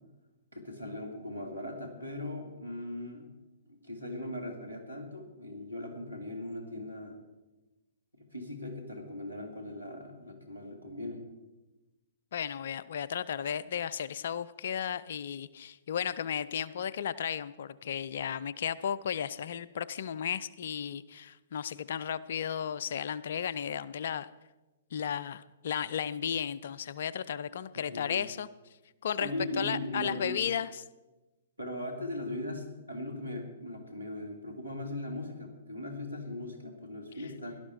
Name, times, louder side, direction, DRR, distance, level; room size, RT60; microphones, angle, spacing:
voice 1, 0.5-3.3 3.7-7.2 8.1-11.2 27.9-28.2 29.2-30.5 31.6-37.6, left 1 dB, 90° right, 4 dB, 2.7 m, -39 dB
voice 2, 12.3-24.3 24.9-28.5 29.0-29.3 29.6-30.7, left 8 dB, 55° left, 18 dB, 0.5 m, -34 dB
17.0 x 12.0 x 4.5 m, 1.1 s
figure-of-eight pair, 115°, 0 cm